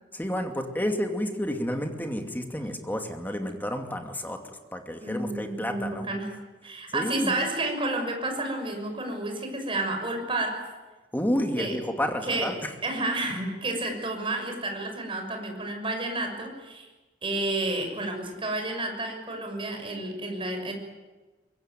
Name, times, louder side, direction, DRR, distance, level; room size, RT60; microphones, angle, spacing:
voice 1, 0.1-4.4 4.7-6.1 6.9-7.3 11.1-12.7, equal, 10° left, 4 dB, 2.5 m, -30 dB
voice 2, 5.0-6.3 6.6-10.6 11.5-11.8 12.2-12.5 12.8-16.9 17.2-20.7, right 2 dB, 30° right, 4 dB, 6.3 m, -30 dB
24.0 x 22.5 x 9.2 m, 1.2 s
head